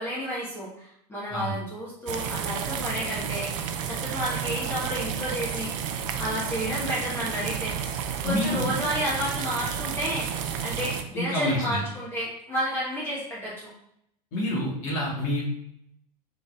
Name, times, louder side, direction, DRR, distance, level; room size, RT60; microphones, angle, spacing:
voice 1, 0.0-5.7 6.2-7.7 8.2-13.7, equal, 10° left, -6 dB, 1.0 m, -31 dB
sound 1, 2.1-11.0, right 8 dB, 50° right, 0.5 m, -31 dB
voice 2, 8.2-8.8 11.1-11.8 14.3-15.4, left 1 dB, 50° left, -4 dB, 1.5 m, -27 dB
5.2 x 3.8 x 2.4 m, 0.74 s
figure-of-eight pair, 85°, 21 cm